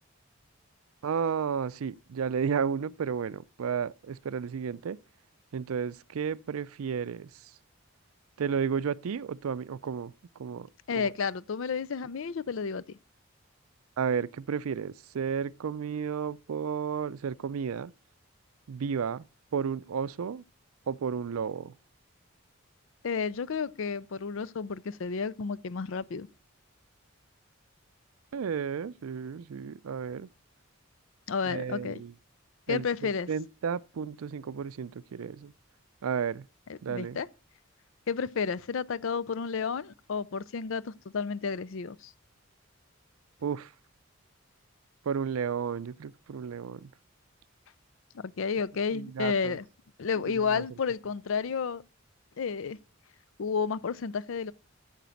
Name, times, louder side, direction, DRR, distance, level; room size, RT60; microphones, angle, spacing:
voice 1, 1.0-5.0 5.5-7.6 8.4-10.7 11.0-11.1 14.0-17.9 18.7-19.2 19.5-20.4 20.9-21.8 28.3-30.3 31.5-32.1 32.7-35.5 36.0-36.5 36.8-37.2 43.4-43.7 45.0-46.9 48.9-49.6 50.3-50.6, right 6 dB, 85° right, 0.4 m, -33 dB
voice 2, 10.9-13.0 23.0-26.3 31.3-32.0 32.7-33.3 36.7-37.3 38.1-42.1 48.1-49.6 50.0-51.8 52.4-52.8 53.4-54.5, left 5 dB, 65° left, 0.5 m, -31 dB
9.2 x 7.3 x 5.7 m
head